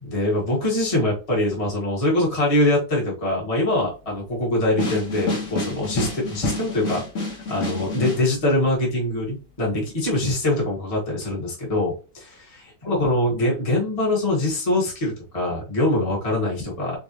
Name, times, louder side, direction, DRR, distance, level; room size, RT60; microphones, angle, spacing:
voice 1, 0.0-7.0 7.3-17.0, left 1 dB, 20° left, -4 dB, 1.5 m, -23 dB
sound 1, 4.8-8.2, left 2 dB, 45° left, 1.6 m, -28 dB
3.9 x 3.9 x 3.0 m, 0.33 s
omnidirectional pair, 2.1 m